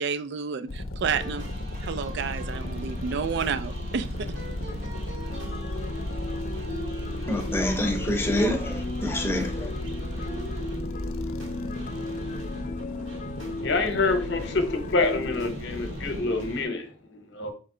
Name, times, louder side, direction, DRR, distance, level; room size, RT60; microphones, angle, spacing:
voice 1, 0.0-1.4 1.8-4.3, right 6 dB, 55° right, 0.3 m, -30 dB
sound 1, 0.7-16.2, left 1 dB, 85° left, 0.6 m, -35 dB
sound 2, 1.0-16.6, right 2 dB, 75° right, 2.1 m, -42 dB
sound 3, 4.1-15.5, left 2 dB, 40° left, 0.3 m, -37 dB
voice 2, 7.3-9.7, left 1 dB, 10° left, 0.7 m, -27 dB
voice 3, 13.6-17.5, left 3 dB, 60° left, 0.9 m, -27 dB
4.4 x 3.1 x 3.7 m
head